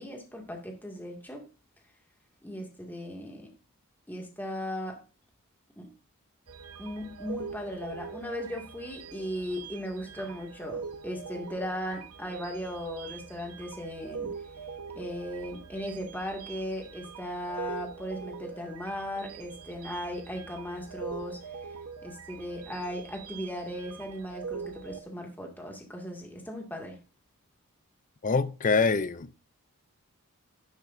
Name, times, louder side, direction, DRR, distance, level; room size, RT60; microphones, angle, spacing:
voice 1, 0.0-1.4 2.4-3.5 4.1-5.0 5.8-5.9 6.8-14.3 14.9-21.4 22.0-27.0, equal, 10° left, 2.2 m, -37 dB
sound 1, 6.5-25.0, right 5 dB, 75° right, 1.2 m, -43 dB
voice 2, 28.2-29.4, left 4 dB, 35° left, 0.5 m, -25 dB
12.0 x 10.5 x 2.7 m
head